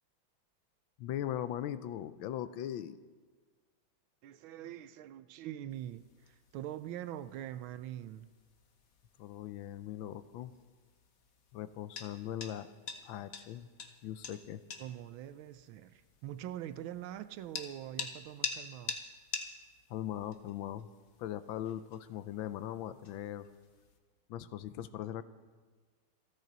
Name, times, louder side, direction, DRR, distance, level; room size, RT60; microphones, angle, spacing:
voice 1, 1.0-3.0 9.2-10.5 11.5-12.7 13.0-13.7 14.0-14.6 19.9-20.9 21.2-23.5 24.3-25.2, left 11 dB, 80° left, 13 dB, 1.4 m, -40 dB
voice 2, 4.2-8.3 14.8-19.0, right 12 dB, 80° right, 13 dB, 1.4 m, -44 dB
sound 1, 5.7-24.0, left 5 dB, 50° left, 1.4 m, -47 dB
27.0 x 9.2 x 4.0 m, 1.4 s
omnidirectional pair, 2.2 m